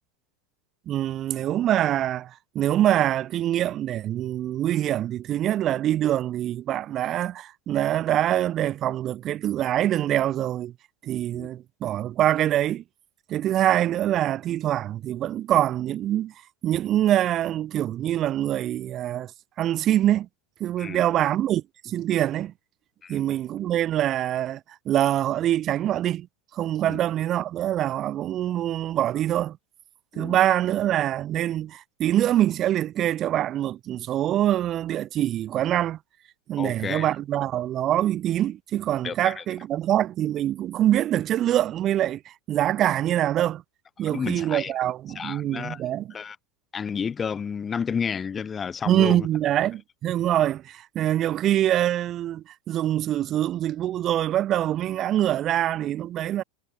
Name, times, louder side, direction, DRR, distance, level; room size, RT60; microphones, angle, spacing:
voice 1, 0.9-10.7 11.0-12.8 13.3-16.3 16.6-19.3 19.6-20.3 20.6-22.5 23.1-24.6 24.9-26.3 26.5-29.6 30.2-36.0 36.5-43.6 44.0-46.1 48.9-56.4, right 12 dB, 40° right, 2.6 m, -24 dB
voice 2, 36.6-37.1 39.0-39.4 44.1-44.7 45.1-45.8 46.1-46.4 46.7-49.3, left 6 dB, 25° left, 5.9 m, -31 dB
hypercardioid pair, 90°, 0 cm